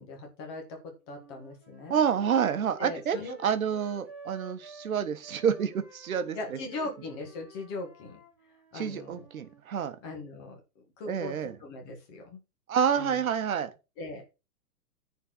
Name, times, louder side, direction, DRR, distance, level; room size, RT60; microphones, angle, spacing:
voice 1, 0.0-2.0 2.8-3.4 6.3-8.2 8.7-9.2 10.0-10.6 11.0-12.4 13.0-13.2 14.0-14.3, left 2 dB, 15° left, 1.5 m, -39 dB
sound 1, 1.1-4.9 5.2-9.6, right 2 dB, 5° right, 1.1 m, -52 dB
voice 2, 1.9-6.6 8.7-10.0 11.1-11.6 12.7-13.7, right 7 dB, 55° right, 1.5 m, -28 dB
10.0 x 4.5 x 6.2 m
hypercardioid pair, 180°, 49 cm